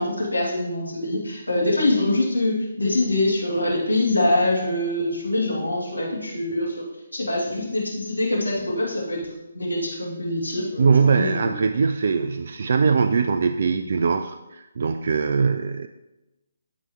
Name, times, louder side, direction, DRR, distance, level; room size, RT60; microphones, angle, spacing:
voice 1, 0.0-6.8 7.1-9.3 9.5-11.5, left 1 dB, 80° left, -2 dB, 2.5 m, -24 dB
voice 2, 10.8-15.9, right 5 dB, 50° right, 8 dB, 0.3 m, -21 dB
12.5 x 4.7 x 3.1 m, 0.98 s
figure-of-eight pair, 140°, 0 cm